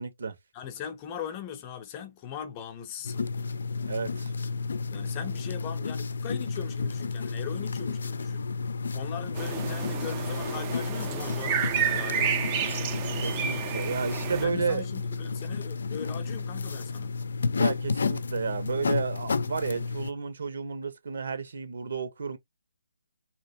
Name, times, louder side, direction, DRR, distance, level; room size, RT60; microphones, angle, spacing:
voice 1, 0.0-0.4 3.9-4.3 13.2-14.8 17.6-22.4, right 5 dB, 65° right, 1.4 m, -32 dB
voice 2, 0.5-3.3 4.9-8.5 8.9-12.6 14.3-17.2, left 8 dB, 25° left, 0.7 m, -40 dB
sound 1, 3.0-20.1, left 4 dB, 70° left, 0.5 m, -31 dB
sound 2, 9.4-14.5, right 8 dB, 25° right, 0.6 m, -31 dB
4.4 x 3.0 x 2.8 m
hypercardioid pair, 155°, 0 cm